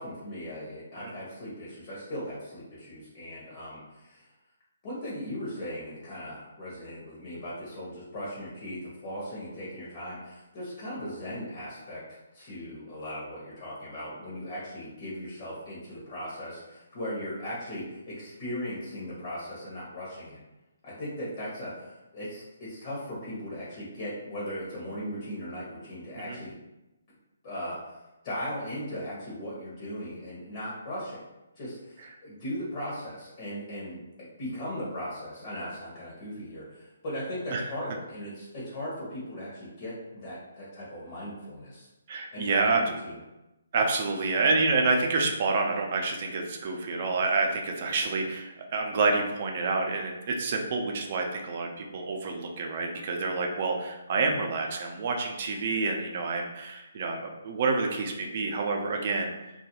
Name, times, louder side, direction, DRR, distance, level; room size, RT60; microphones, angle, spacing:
voice 1, 0.0-4.3 4.8-20.4 20.8-26.5 27.4-28.0 28.2-31.2 31.6-41.9 42.3-43.2, equal, 40° left, -7 dB, 0.9 m, -38 dB
voice 2, 42.1-42.9 43.7-59.5, right 3 dB, 45° right, 1 dB, 0.5 m, -28 dB
2.3 x 2.2 x 2.9 m, 0.99 s
hypercardioid pair, 150°, 0 cm